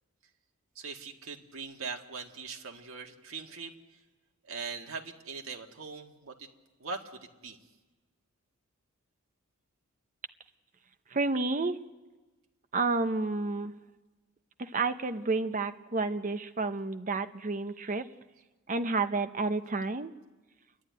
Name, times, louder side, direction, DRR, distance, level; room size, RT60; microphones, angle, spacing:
voice 1, 0.8-3.7 4.4-6.5 6.8-7.6, right 4 dB, 70° right, 2 dB, 1.8 m, -41 dB
voice 2, 11.1-11.8 12.7-13.7 14.6-18.1 18.7-20.1, right 3 dB, 35° right, 9 dB, 0.8 m, -30 dB
29.0 x 12.0 x 9.5 m, 1.2 s
head